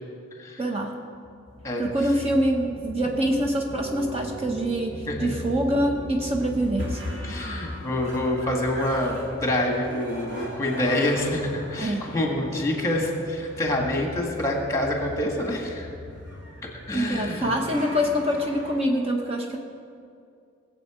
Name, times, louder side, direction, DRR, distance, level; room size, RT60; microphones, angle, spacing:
voice 1, 0.6-1.0 1.8-7.0 11.8-12.1 16.9-19.6, equal, 30° right, 1 dB, 0.9 m, -25 dB
sound 1, 1.5-18.8, equal, 65° right, 2.5 m, -38 dB
voice 2, 7.2-15.9 16.9-17.5, left 1 dB, 15° left, 1 dB, 1.8 m, -26 dB
19.5 x 7.7 x 5.0 m, 2.4 s
head